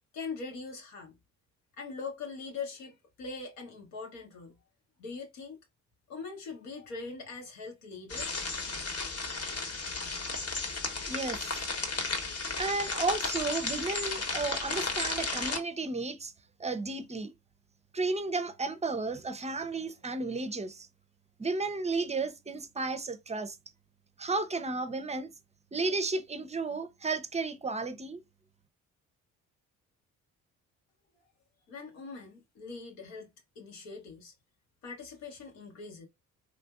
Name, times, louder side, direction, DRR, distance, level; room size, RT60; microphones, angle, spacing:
voice 1, 0.1-1.2 1.8-4.6 5.0-5.6 6.1-8.4 31.7-33.3 33.6-34.3 34.8-36.1, left 4 dB, 80° left, 0.8 m, -42 dB
sound 1, 8.1-15.6, left 3 dB, 40° left, 0.9 m, -34 dB
voice 2, 11.1-11.6 12.6-16.3 16.6-17.3 17.9-20.9 21.4-23.6 24.2-25.3 25.7-28.2, right 3 dB, 15° right, 0.5 m, -33 dB
3.3 x 2.5 x 2.3 m
hypercardioid pair, 40°, 40 cm